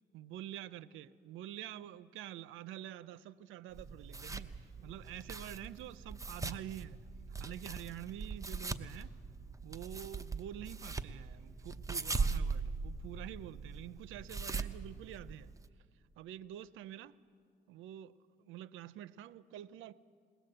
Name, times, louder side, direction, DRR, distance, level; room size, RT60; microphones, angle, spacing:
voice 1, 0.1-4.5 4.8-7.0 7.4-9.1 9.6-15.5 16.2-17.2 17.7-18.1 18.4-19.9, right 12 dB, 90° right, 0.5 m, -47 dB
sound 1, 3.7-15.7, right 4 dB, 15° right, 0.8 m, -40 dB
21.5 x 18.5 x 7.8 m
cardioid pair, 90°, 20 cm